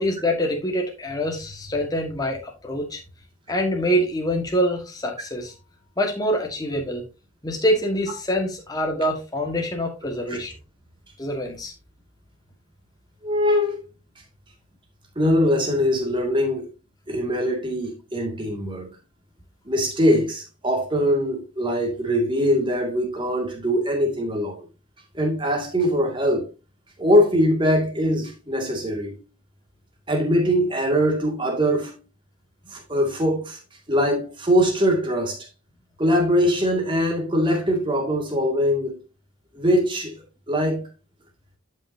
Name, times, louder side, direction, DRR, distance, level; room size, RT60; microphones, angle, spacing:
voice 1, 0.0-3.0 3.5-5.5 6.0-7.0 7.4-10.5 11.2-11.7, equal, 20° left, 1.6 m, -25 dB
voice 2, 13.2-13.8 15.2-16.7 17.1-18.9 19.7-24.6 25.1-26.5 27.0-29.2 30.1-31.9 32.7-33.6 33.9-35.4 36.0-39.0 39.6-40.1 40.5-40.9, equal, 25° right, 2.2 m, -22 dB
11.0 x 5.8 x 2.7 m
head